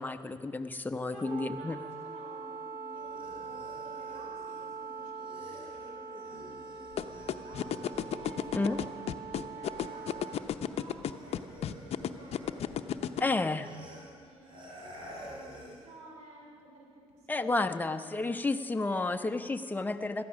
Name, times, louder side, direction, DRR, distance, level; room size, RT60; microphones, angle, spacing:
voice 1, 0.0-1.8 8.5-8.8 13.2-13.7 17.3-20.2, left 3 dB, 15° left, 7 dB, 0.8 m, -31 dB
Wind instrument woodwind instrument, 1.2-10.4, right 5 dB, 20° right, 0.9 m, -43 dB
voice 2, 1.6-17.6 17.9-18.3 18.8-19.4, right 1 dB, 70° right, -1 dB, 4.4 m, -53 dB
sound 1, 2.9-9.1 9.4-15.9, equal, 45° right, 4.5 m, -51 dB
sound 2, 7.0-13.2, left 10 dB, 60° left, 0.7 m, -32 dB
17.5 x 13.0 x 6.3 m, 2.1 s
supercardioid pair, 80°, 12 cm